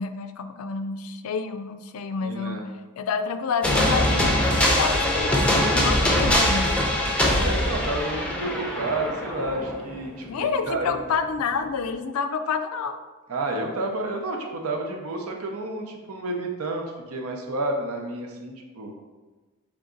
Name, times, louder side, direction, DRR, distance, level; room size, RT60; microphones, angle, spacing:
voice 1, 0.0-2.6 3.0-6.7 10.3-13.0, left 5 dB, 80° left, 9 dB, 0.4 m, -29 dB
voice 2, 2.2-2.7 7.4-10.9 13.3-18.9, right 2 dB, 80° right, 2 dB, 0.7 m, -30 dB
sound 1, 3.6-10.2, left 1 dB, 5° left, 0.5 m, -22 dB
3.9 x 3.5 x 3.7 m, 1.3 s
head